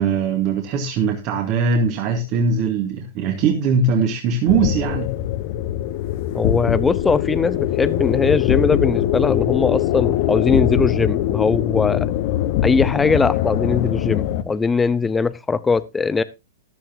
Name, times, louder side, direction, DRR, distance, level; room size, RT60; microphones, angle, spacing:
voice 1, 0.0-5.1, right 5 dB, 40° right, 2 dB, 2.1 m, -20 dB
sound 1, 4.5-14.4, left 12 dB, 50° left, 1.2 m, -22 dB
voice 2, 6.3-12.1 12.6-16.2, left 4 dB, 10° left, 16 dB, 0.7 m, -20 dB
13.5 x 12.0 x 2.8 m, 0.25 s
hypercardioid pair, 110°, 0 cm